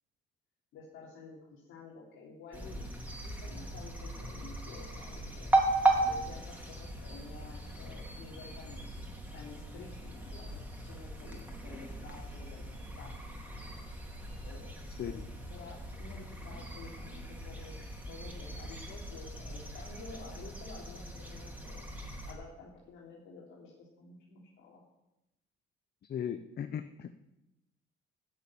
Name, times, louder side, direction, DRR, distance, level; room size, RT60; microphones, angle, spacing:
voice 1, 0.7-5.6 6.1-8.8 9.3-13.4 14.4-14.8 15.0-15.1 15.5-21.8 22.2-24.8, left 4 dB, 85° left, -4 dB, 3.1 m, -51 dB
sound 1, 2.5-22.3, right 2 dB, 5° right, 3.5 m, -37 dB
voice 2, 26.1-27.1, left 9 dB, 55° left, 10 dB, 0.8 m, -37 dB
13.0 x 7.0 x 9.9 m, 0.92 s
cardioid pair, 90°, 20 cm